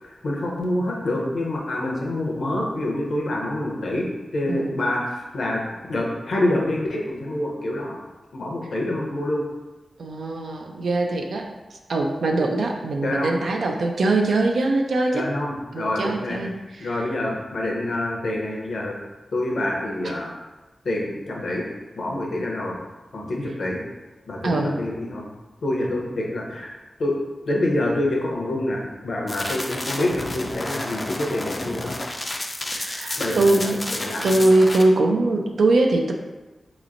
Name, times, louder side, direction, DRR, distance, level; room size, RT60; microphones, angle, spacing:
voice 1, 0.0-5.6 5.9-8.0 8.3-9.4 13.0-13.3 15.1-16.4 16.8-19.0 19.3-20.3 20.8-21.6 21.9-22.8 23.1-23.8 24.3-25.3 25.6-26.7 27.0-27.1 27.5-31.9 33.2-34.4, left 1 dB, 75° left, -2 dB, 0.7 m, -26 dB
voice 2, 10.0-15.3 15.7-16.9 24.4-24.8 32.7-33.8 34.2-36.1, right 2 dB, 85° right, 1 dB, 0.4 m, -22 dB
sound 1, 29.3-34.8, left 1 dB, 25° left, 0.3 m, -31 dB
4.0 x 3.0 x 2.5 m, 1.1 s
wide cardioid pair, 105°, 0 cm